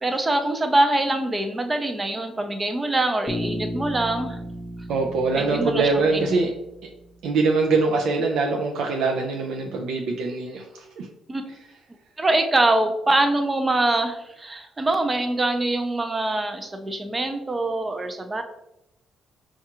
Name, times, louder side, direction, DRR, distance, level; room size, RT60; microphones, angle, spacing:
voice 1, 0.0-4.4 5.3-6.5 11.3-11.4 12.2-18.4, right 2 dB, 25° right, 6 dB, 0.5 m, -24 dB
Bass guitar, 3.3-7.3, equal, 25° left, 0.7 m, -35 dB
voice 2, 4.9-6.5 7.2-11.1, right 3 dB, 80° right, 1 dB, 0.4 m, -23 dB
4.5 x 2.3 x 2.9 m, 0.87 s
cardioid pair, 90°, 0 cm